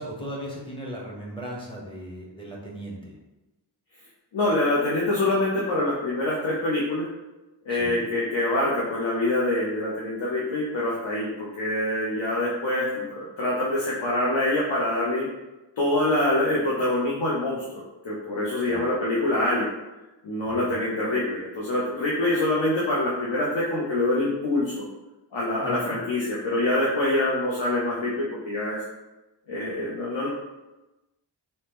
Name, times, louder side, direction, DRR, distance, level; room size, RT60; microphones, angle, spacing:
voice 1, 0.0-3.1 7.7-8.0 18.7-18.8 20.5-20.8 25.6-26.0, equal, 10° left, -3 dB, 0.6 m, -37 dB
voice 2, 4.3-7.1 7.7-15.3 15.8-17.6 18.0-19.7 20.2-24.9 25.3-28.8 29.5-30.3, left 1 dB, 80° left, -5 dB, 0.6 m, -25 dB
2.7 x 2.1 x 3.3 m, 1.0 s
wide cardioid pair, 70°, 44 cm